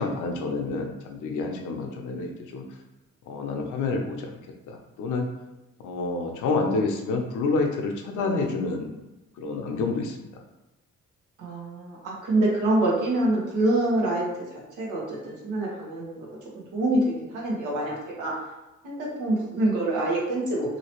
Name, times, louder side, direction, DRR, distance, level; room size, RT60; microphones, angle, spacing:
voice 1, 0.0-2.6 3.3-4.3 4.7-5.3 5.8-9.0 9.4-10.3, left 3 dB, 85° left, 3 dB, 0.6 m, -28 dB
voice 2, 11.4-14.2 14.5-16.3 16.7-18.3 18.8-20.8, right 1 dB, 90° right, -3 dB, 1.1 m, -26 dB
2.9 x 2.8 x 2.9 m, 1.0 s
cardioid pair, 90°, 30 cm